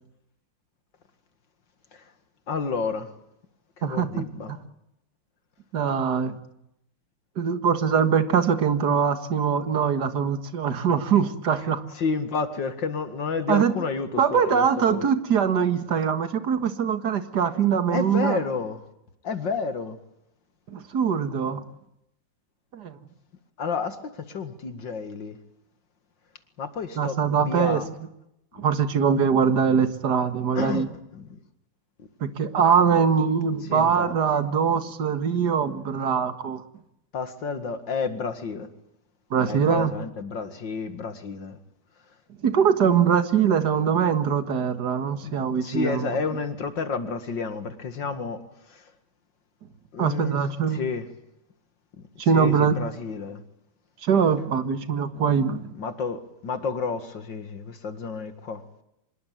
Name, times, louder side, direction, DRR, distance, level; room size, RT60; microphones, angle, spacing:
voice 1, 2.5-3.1 3.8-4.5 11.9-15.0 17.9-18.8 19.2-20.0 23.6-25.4 26.6-27.9 28.5-28.6 30.5-30.9 31.1-31.3 33.7-34.1 37.1-38.7 39.4-41.6 45.2-48.4 48.7-48.8 49.9-50.4 50.7-51.1 52.3-53.4 55.8-58.6, left 5 dB, 70° left, 10 dB, 2.6 m, -30 dB
voice 2, 3.8-4.6 5.7-6.4 7.4-11.8 13.5-13.7 14.2-18.4 20.7-21.6 22.7-23.0 27.0-27.8 28.6-30.9 32.2-36.6 39.3-40.0 42.4-46.1 50.0-50.8 52.2-52.8 54.0-55.7, right 7 dB, 60° right, 10 dB, 2.2 m, -22 dB
25.5 x 21.5 x 9.3 m, 0.81 s
omnidirectional pair, 2.1 m